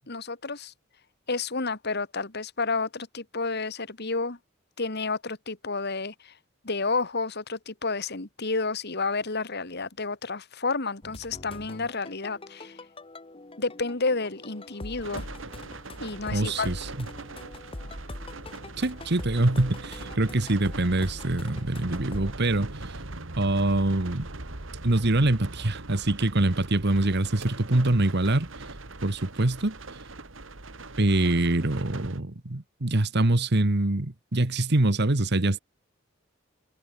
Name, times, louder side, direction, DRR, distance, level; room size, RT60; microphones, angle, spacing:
voice 1, 0.1-0.7 1.3-4.4 4.8-6.3 6.6-12.8 13.6-15.3 16.0-16.7, left 3 dB, 55° left, 2.3 m, -30 dB
sound 1, 11.0-22.3, left 1 dB, 30° left, 1.4 m, -42 dB
sound 2, 15.0-32.2, right 2 dB, 75° right, 2.3 m, -41 dB
voice 2, 16.3-17.1 18.8-22.9 23.4-24.3 24.8-28.5 29.0-29.7 31.0-35.6, right 2 dB, 55° right, 1.5 m, -24 dB
head